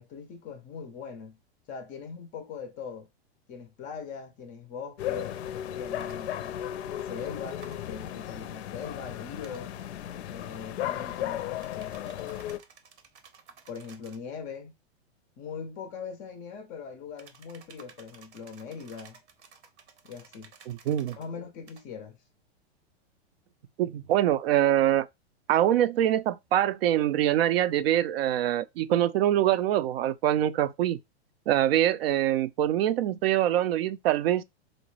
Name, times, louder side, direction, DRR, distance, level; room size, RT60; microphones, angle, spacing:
voice 1, 0.0-1.4 1.7-3.1 3.5-5.4 5.7-6.6 7.0-9.8 10.3-12.2 13.7-14.7 15.4-19.2 20.0-20.5 21.1-22.2, left 6 dB, 25° left, 0.4 m, -41 dB
sound 1, 5.0-12.6, left 11 dB, 80° left, 0.5 m, -35 dB
sound 2, 6.0-6.2 7.6-7.8 9.4-9.6 11.6-14.3 17.2-21.3 21.7-21.9, right 6 dB, 85° right, 0.9 m, -54 dB
voice 2, 20.7-21.2 23.8-25.1 25.5-31.0 31.5-34.4, right 12 dB, 65° right, 0.4 m, -24 dB
4.0 x 2.1 x 3.0 m
hypercardioid pair, 135°, 33 cm